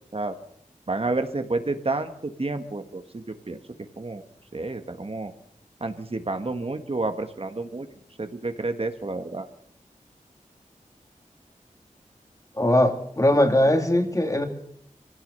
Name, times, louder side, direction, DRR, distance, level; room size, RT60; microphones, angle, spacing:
voice 1, 0.9-3.6 4.0-4.2 4.5-5.3 5.8-7.9 8.2-9.5, right 3 dB, 45° right, 8 dB, 1.6 m, -30 dB
voice 2, 12.6-14.5, left 1 dB, 25° left, 6 dB, 2.6 m, -20 dB
24.5 x 16.5 x 6.8 m, 0.69 s
wide cardioid pair, 80°, 14 cm